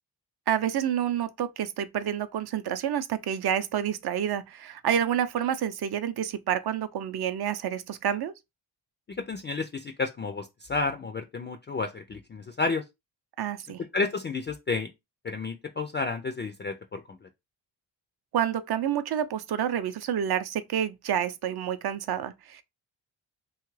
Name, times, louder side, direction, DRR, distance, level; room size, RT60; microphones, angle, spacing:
voice 1, 0.5-8.3 13.4-13.8 18.3-22.6, right 9 dB, 60° right, 0.5 m, -28 dB
voice 2, 9.2-12.8 13.9-14.9 15.2-17.2, left 4 dB, 25° left, 0.3 m, -31 dB
2.9 x 2.4 x 3.1 m
cardioid pair, 70°, 44 cm